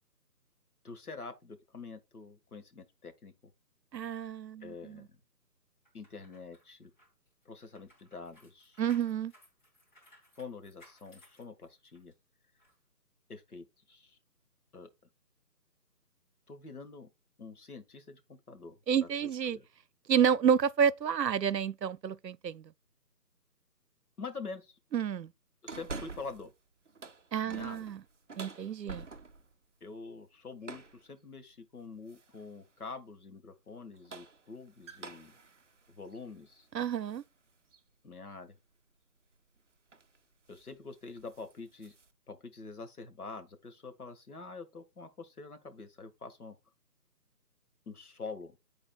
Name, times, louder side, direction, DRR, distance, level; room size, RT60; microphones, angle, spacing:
voice 1, 0.8-3.5 4.6-5.2 5.9-6.9 7.4-8.8 10.4-12.1 13.3-14.2 14.7-14.9 16.5-17.1 17.4-18.8 19.4-19.6 24.2-24.8 25.6-26.5 27.4-27.8 29.8-35.4 35.9-36.7 38.0-38.5 40.5-41.9 42.3-46.6 47.9-48.6, left 4 dB, 60° left, 1.6 m, -46 dB
voice 2, 3.9-5.1 8.8-9.3 18.9-19.6 20.1-22.7 24.9-25.3 27.3-28.0 28.4-29.1 36.7-37.2, right 8 dB, 90° right, 0.6 m, -29 dB
sound 1, 5.8-12.1 12.6-12.7, left 1 dB, 30° left, 3.0 m, -62 dB
sound 2, 25.7-26.5 26.9-29.5 30.6-31.0 32.1-32.5 33.8-37.3 37.7-37.8 39.4-39.6 39.9-40.2 40.5-40.7 41.1-42.1, right 4 dB, 50° right, 0.5 m, -47 dB
12.0 x 4.0 x 2.3 m
figure-of-eight pair, 160°, 49 cm